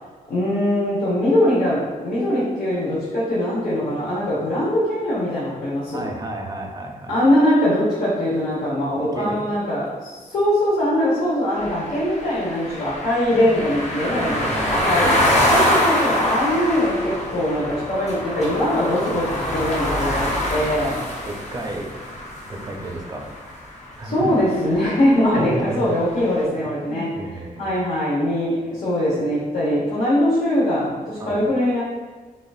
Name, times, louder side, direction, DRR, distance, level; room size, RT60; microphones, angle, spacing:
voice 1, 0.3-6.1 7.1-15.1 15.5-21.0 24.0-27.1 27.6-31.8, left 1 dB, 80° left, -9 dB, 1.1 m, -21 dB
voice 2, 5.9-7.2 9.1-9.4 13.0-13.6 14.1-15.4 19.9-20.2 21.3-21.9 22.5-23.3 23.9-24.3 25.3-25.8 26.2-26.4 26.9-27.7 31.2-31.4, right 1 dB, 25° right, 1 dB, 0.5 m, -32 dB
sound 1, 11.6-23.6, left 1 dB, 50° left, 0.7 m, -24 dB
6.6 x 2.5 x 2.4 m, 1.4 s
wide cardioid pair, 155°, 15 cm